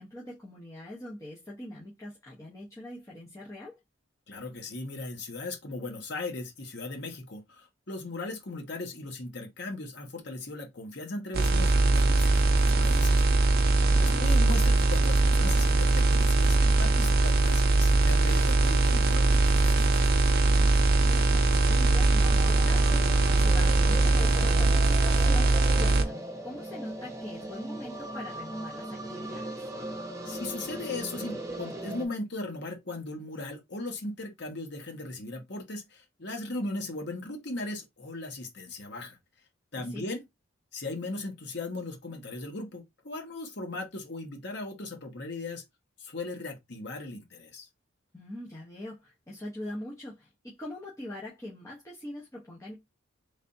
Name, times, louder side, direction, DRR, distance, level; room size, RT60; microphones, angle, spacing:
voice 1, 0.0-3.8 13.8-14.2 20.8-29.7 39.7-40.0 48.1-52.7, left 1 dB, 15° left, 0.9 m, -42 dB
voice 2, 4.3-13.2 14.0-20.1 30.2-39.2 39.7-40.2 40.7-45.6 46.0-47.7, left 2 dB, 55° left, 1.2 m, -38 dB
sound 1, 11.3-26.0, right 2 dB, 50° right, 0.6 m, -22 dB
sound 2, 22.2-32.0, right 1 dB, 15° right, 1.0 m, -39 dB
3.4 x 3.2 x 2.7 m
head